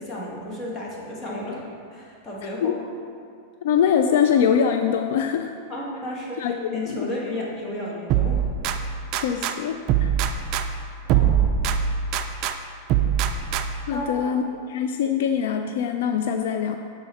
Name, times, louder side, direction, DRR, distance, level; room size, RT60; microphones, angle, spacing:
voice 1, 0.0-2.9 5.7-8.5 8.8-9.0 11.1-11.6 13.9-14.4, left 1 dB, 25° left, -4 dB, 1.4 m, -33 dB
voice 2, 3.6-5.5 6.4-7.1 9.1-10.1 13.9-14.4 14.7-16.8, left 8 dB, 70° left, 6 dB, 0.3 m, -23 dB
sound 1, 8.1-9.5 9.9-12.5 12.9-13.9, right 8 dB, 40° right, 0.4 m, -23 dB
6.6 x 4.8 x 4.1 m, 2.3 s
supercardioid pair, 140°, 0 cm